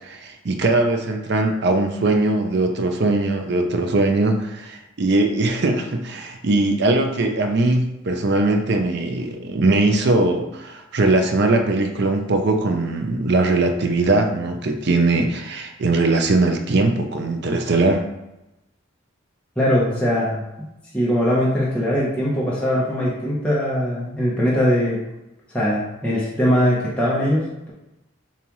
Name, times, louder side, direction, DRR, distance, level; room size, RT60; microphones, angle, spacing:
voice 1, 0.0-18.0, right 2 dB, 55° right, 4 dB, 0.5 m, -20 dB
voice 2, 19.6-20.4 20.9-25.0 25.5-27.7, equal, 5° left, -8 dB, 0.8 m, -21 dB
7.0 x 2.5 x 3.0 m, 0.94 s
head